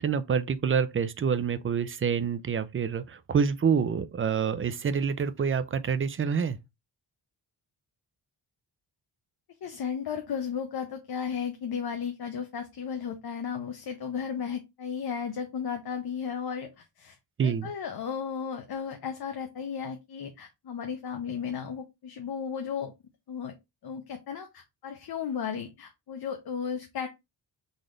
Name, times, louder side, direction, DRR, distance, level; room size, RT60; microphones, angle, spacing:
voice 1, 0.0-6.6 17.4-17.7, right 6 dB, 30° right, 0.4 m, -27 dB
voice 2, 9.6-17.2 17.4-22.9 23.3-23.6 23.8-27.1, left 7 dB, 60° left, 0.8 m, -34 dB
4.0 x 3.2 x 3.7 m
wide cardioid pair, 140°, 43 cm